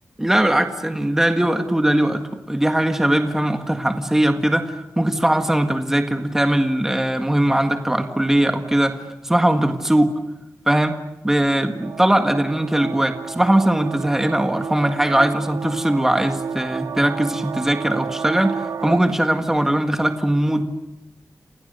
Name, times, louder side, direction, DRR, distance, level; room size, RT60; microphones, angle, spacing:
voice 1, 0.2-9.0 9.2-10.1 10.7-10.9 11.2-20.6, right 1 dB, 5° right, 5 dB, 1.7 m, -20 dB
sound 1, 11.8-19.0, right 6 dB, 85° right, 1.1 m, -31 dB
30.0 x 27.5 x 6.7 m, 0.98 s
wide cardioid pair, 175°, 6 cm